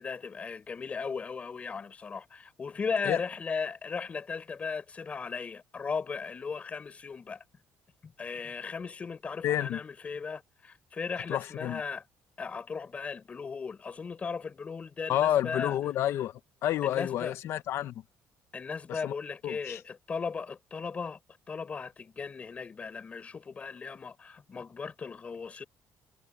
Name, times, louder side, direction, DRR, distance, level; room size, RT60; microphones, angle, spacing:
voice 1, 0.0-7.4 8.0-12.0 12.4-15.7 16.8-17.3 18.5-21.2 21.5-25.6, left 5 dB, 25° left, 7.1 m, -37 dB
voice 2, 9.4-9.8 11.3-11.8 15.1-18.0 18.9-19.1 19.4-19.8, left 12 dB, 60° left, 1.0 m, -30 dB
cardioid pair, 155°, 5 cm